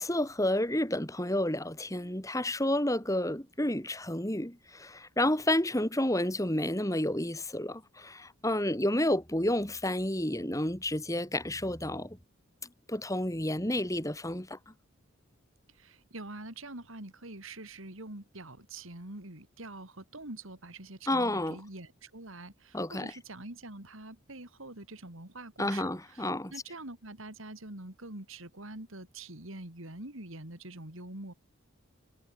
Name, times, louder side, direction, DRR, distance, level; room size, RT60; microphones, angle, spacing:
voice 1, 0.0-12.2 12.9-14.6 21.1-21.6 22.7-23.1 25.6-26.5, left 1 dB, 15° left, 3.2 m, -30 dB
voice 2, 15.8-31.3, right 2 dB, 70° right, 3.5 m, -45 dB
head